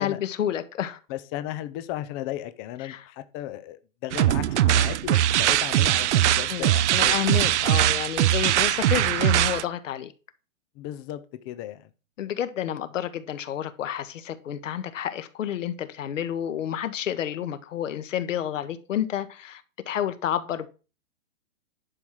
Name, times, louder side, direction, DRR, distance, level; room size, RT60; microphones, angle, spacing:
voice 1, 0.0-1.0 2.8-3.0 6.5-10.1 12.2-19.6 19.9-20.7, left 10 dB, 70° left, 1.6 m, -30 dB
voice 2, 1.1-7.8 10.8-11.9, left 13 dB, 20° left, 0.5 m, -35 dB
sound 1, 4.1-9.6, right 13 dB, 60° right, 0.6 m, -21 dB
11.0 x 6.0 x 4.9 m
hypercardioid pair, 150°, 40 cm